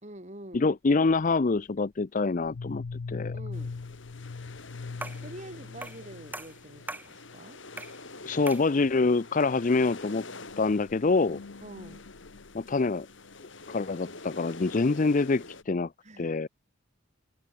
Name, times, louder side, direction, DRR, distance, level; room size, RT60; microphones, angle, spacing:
voice 1, 0.0-0.7 3.3-3.7 5.2-7.6 11.6-12.0 16.0-16.3, right 1 dB, 35° right, 3.0 m, -46 dB
voice 2, 0.5-3.4 8.2-10.3 10.6-11.4 12.5-13.1 13.7-15.9 16.2-16.5, left 3 dB, 35° left, 0.5 m, -26 dB
sound 1, 2.4-6.9 7.2-7.4 7.7-8.0 8.2-8.5 9.2-9.3 10.3-13.5, left 4 dB, 80° left, 0.6 m, -42 dB
sound 2, 3.5-15.6, left 3 dB, 55° left, 3.4 m, -46 dB
sound 3, 5.0-5.3 5.8-6.1 6.3-7.1 7.8-8.0 8.5-8.7, right 2 dB, 10° right, 1.0 m, -40 dB
head